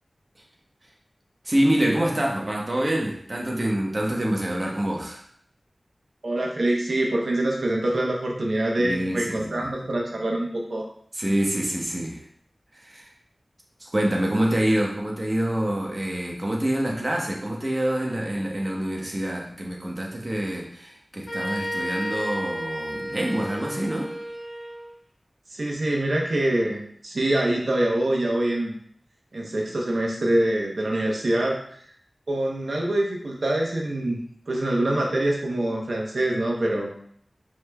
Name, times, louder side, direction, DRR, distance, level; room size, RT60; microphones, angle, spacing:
voice 1, 1.4-5.2 8.8-9.7 11.1-12.2 12.7-13.1 13.8-24.1, right 1 dB, 40° right, -1 dB, 1.0 m, -26 dB
voice 2, 6.2-10.8 25.5-28.7 29.3-31.8 32.3-36.9, right 1 dB, 80° right, -1 dB, 0.8 m, -25 dB
sound 1, 21.3-24.9, equal, 75° left, 1.2 m, -32 dB
4.8 x 3.6 x 2.2 m, 0.63 s
wide cardioid pair, 50°, 0 cm